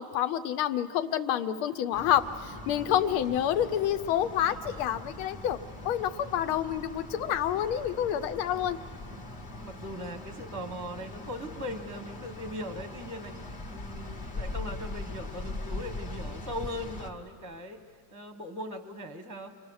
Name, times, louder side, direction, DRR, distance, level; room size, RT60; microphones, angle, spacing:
voice 1, 0.0-5.6 5.9-8.8, left 10 dB, 90° left, 11 dB, 1.6 m, -28 dB
sound 1, 1.9-17.1, left 2 dB, 30° left, 1.1 m, -41 dB
voice 2, 9.6-17.8 18.1-19.5, equal, 15° right, 6 dB, 0.6 m, -39 dB
28.5 x 24.5 x 6.3 m, 2.3 s
omnidirectional pair, 2.3 m